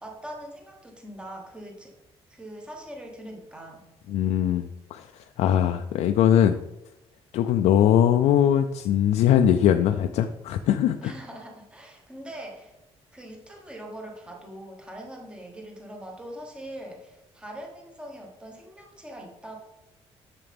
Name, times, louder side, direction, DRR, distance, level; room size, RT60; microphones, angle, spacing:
voice 1, 0.0-1.9 2.3-3.8 11.0-12.7 13.1-19.6, right 1 dB, 10° right, 1 dB, 1.2 m, -42 dB
voice 2, 4.1-6.6 7.3-11.1, left 10 dB, 80° left, 7 dB, 0.4 m, -21 dB
7.1 x 6.7 x 3.4 m, 0.90 s
cardioid pair, 150°, 11 cm